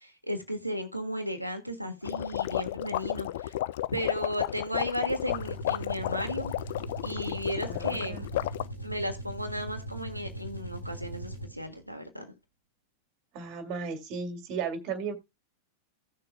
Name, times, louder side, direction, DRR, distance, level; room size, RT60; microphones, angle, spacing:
voice 1, 0.0-3.5 3.9-6.5 7.0-8.3 8.8-12.3, equal, 90° right, 1.5 m, -35 dB
sound 1, 2.0-8.7, left 14 dB, 55° left, 0.4 m, -32 dB
sound 2, 5.2-11.8, right 1 dB, 85° left, 2.1 m, -40 dB
voice 2, 7.7-8.3 13.3-15.1, right 5 dB, 40° right, 2.3 m, -35 dB
16.5 x 6.7 x 2.3 m
figure-of-eight pair, 90°, 0 cm